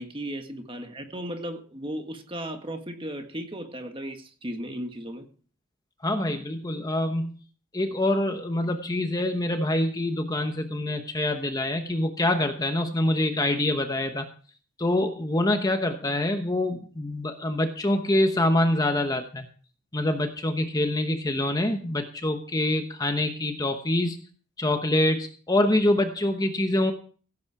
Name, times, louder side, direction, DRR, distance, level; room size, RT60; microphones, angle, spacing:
voice 1, 0.0-5.3, equal, 25° right, 5 dB, 1.6 m, -35 dB
voice 2, 6.0-7.3 7.7-14.3 14.8-19.5 19.9-24.2 24.6-26.9, left 1 dB, 20° left, 6 dB, 1.0 m, -25 dB
16.0 x 8.5 x 4.7 m, 0.41 s
head